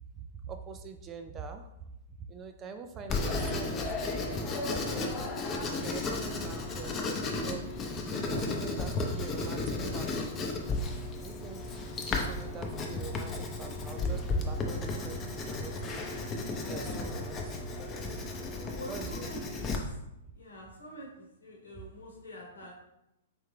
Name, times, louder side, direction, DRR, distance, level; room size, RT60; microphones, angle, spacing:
voice 1, 0.2-1.7 2.3-4.9 5.8-7.7 8.0-10.3 11.2-16.1 16.7-17.7 18.9-19.3 21.8-21.9 22.6-22.7, right 5 dB, 25° right, 7 dB, 0.3 m, -44 dB
Writing, 3.1-19.8, left 2 dB, 25° left, 0.7 m, -34 dB
voice 2, 6.1-6.6 18.6-20.0 20.4-22.7, equal, 90° left, -3 dB, 1.2 m, -47 dB
3.4 x 3.4 x 3.2 m, 0.88 s
hypercardioid pair, 120°, 0 cm